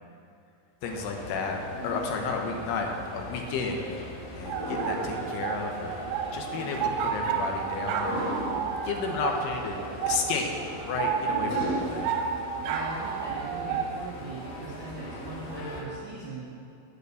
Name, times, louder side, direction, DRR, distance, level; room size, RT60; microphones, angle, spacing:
voice 1, 0.8-8.3 8.8-9.8 10.1-10.5 10.8-12.1, left 4 dB, 80° left, 2 dB, 3.0 m, -32 dB
sound 1, 0.8-15.8, equal, 60° left, 1.7 m, -38 dB
sound 2, 4.5-14.0, right 7 dB, 85° right, 2.9 m, -31 dB
voice 2, 12.6-16.4, right 3 dB, 70° right, -8 dB, 1.0 m, -40 dB
8.0 x 6.7 x 8.0 m, 2.6 s
omnidirectional pair, 4.7 m